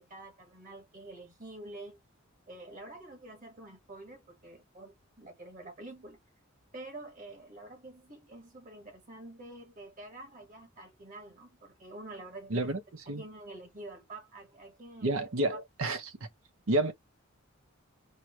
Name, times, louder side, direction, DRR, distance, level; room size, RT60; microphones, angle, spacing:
voice 1, 0.0-2.0 2.5-6.2 6.7-12.7 13.1-15.3, right 2 dB, 40° right, 1.8 m, -47 dB
voice 2, 12.5-12.8 13.1-13.2 15.0-16.1 16.7-16.9, right 2 dB, 80° right, 0.9 m, -29 dB
4.6 x 2.3 x 4.6 m
head